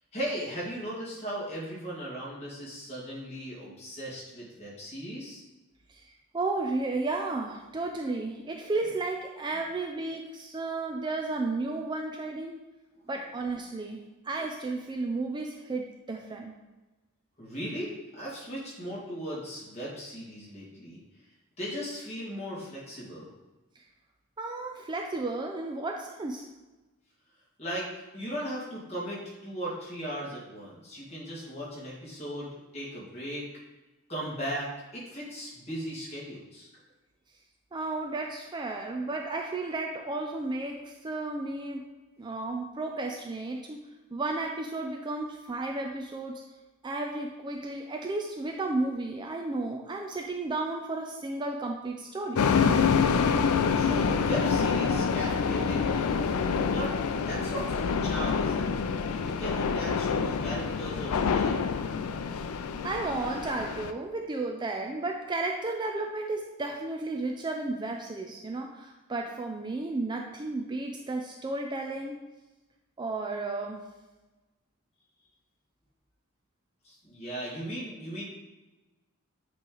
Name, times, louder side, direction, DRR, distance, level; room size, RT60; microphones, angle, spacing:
voice 1, 0.1-5.4 12.9-13.1 17.4-21.0 21.6-23.3 27.6-27.9 28.1-33.5 34.1-36.7 53.7-56.3 56.7-58.8 59.1-61.7 76.8-78.2, equal, 30° left, -6 dB, 2.1 m, -37 dB
voice 2, 6.3-12.6 13.1-16.5 24.4-26.5 37.7-41.8 42.2-43.8 44.1-46.4 46.8-52.4 62.8-72.2 73.0-73.8, right 2 dB, 20° right, 2 dB, 0.4 m, -33 dB
sound 1, 52.4-63.9, left 5 dB, 85° left, 0.4 m, -27 dB
8.1 x 3.1 x 3.9 m, 1.1 s
head